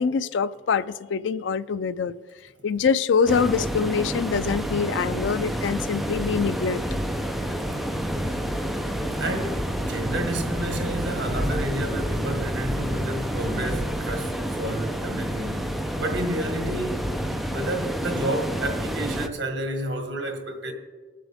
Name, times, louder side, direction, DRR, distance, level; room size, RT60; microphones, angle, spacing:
voice 1, 0.0-2.1 2.6-6.8, left 6 dB, 85° left, 0.4 m, -24 dB
sound 1, 3.3-19.3, equal, ahead, 0.6 m, -29 dB
voice 2, 9.2-15.7 16.0-17.1 17.5-20.7, right 1 dB, 80° right, 1.7 m, -30 dB
20.0 x 7.5 x 3.5 m
head